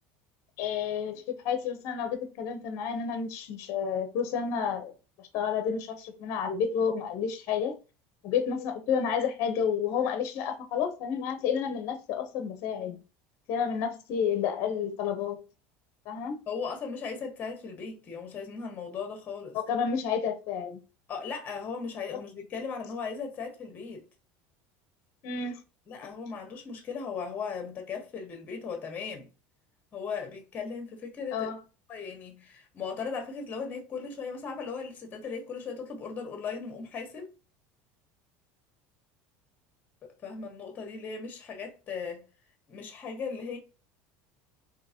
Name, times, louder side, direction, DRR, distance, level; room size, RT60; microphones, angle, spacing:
voice 1, 0.6-4.9 5.3-7.7 8.2-13.0 13.5-15.4 16.1-16.4 19.5-20.8 25.2-25.6 31.3-31.6, left 7 dB, 55° left, 0.8 m, -30 dB
voice 2, 16.5-19.6 21.1-24.0 25.9-29.3 29.9-31.5 31.9-37.3 40.2-42.2 42.7-43.6, left 5 dB, 30° left, 1.3 m, -37 dB
3.8 x 2.9 x 2.8 m
cardioid pair, 140°, 6 cm